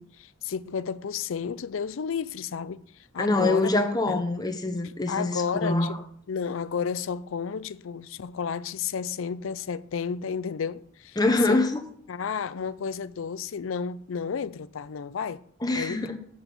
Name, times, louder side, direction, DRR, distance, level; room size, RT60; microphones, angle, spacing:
voice 1, 0.0-2.8 3.1-3.7 4.1-4.2 5.1-11.2 11.5-11.6 12.1-15.4 15.8-16.0, left 6 dB, 75° left, 0.4 m, -32 dB
voice 2, 3.2-6.0 11.2-11.8 15.6-16.2, left 2 dB, 20° left, 1.0 m, -25 dB
7.8 x 5.9 x 6.9 m
head